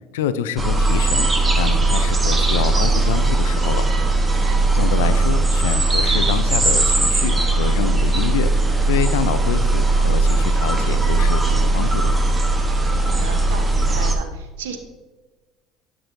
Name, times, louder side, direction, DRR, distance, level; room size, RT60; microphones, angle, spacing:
voice 1, 0.1-1.3 1.6-3.9 4.7-8.5 8.9-12.1, left 9 dB, 85° left, 12 dB, 0.5 m, -26 dB
sound 1, 0.6-14.1, right 2 dB, 20° right, 1.1 m, -18 dB
voice 2, 4.4-4.7 12.5-14.8, right 6 dB, 85° right, 6 dB, 1.0 m, -36 dB
10.0 x 6.0 x 2.7 m, 1.2 s
hypercardioid pair, 75°, 0 cm